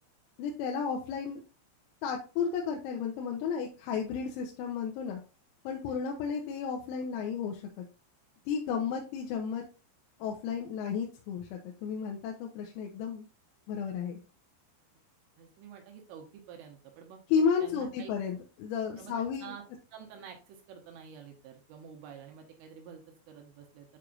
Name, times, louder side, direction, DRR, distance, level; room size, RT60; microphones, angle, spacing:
voice 1, 0.4-1.4 2.0-5.2 5.7-7.9 8.5-9.6 10.2-13.3 13.7-14.2 17.3-19.5, left 6 dB, 90° left, 1 dB, 3.6 m, -33 dB
voice 2, 15.4-17.2 17.6-18.1 19.0-19.6 19.9-24.0, right 7 dB, 75° right, 2 dB, 3.4 m, -49 dB
9.0 x 4.8 x 2.6 m, 0.33 s
omnidirectional pair, 6.0 m